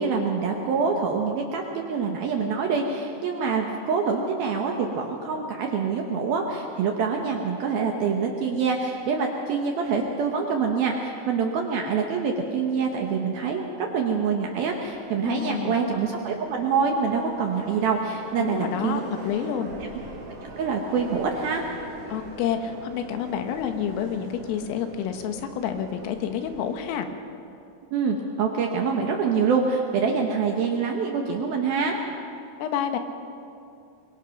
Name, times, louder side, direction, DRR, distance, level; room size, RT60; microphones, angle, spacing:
voice 1, 0.0-19.0 20.6-21.6 27.9-32.0, right 5 dB, 70° right, 1 dB, 2.4 m, -25 dB
Subway metro underground, 14.5-26.8, right 2 dB, 35° right, 3.0 m, -43 dB
voice 2, 15.2-15.8 18.4-19.7 22.1-27.1 32.6-33.0, left 8 dB, 90° left, 7 dB, 4.0 m, -29 dB
24.0 x 22.0 x 5.9 m, 2.6 s
omnidirectional pair, 5.8 m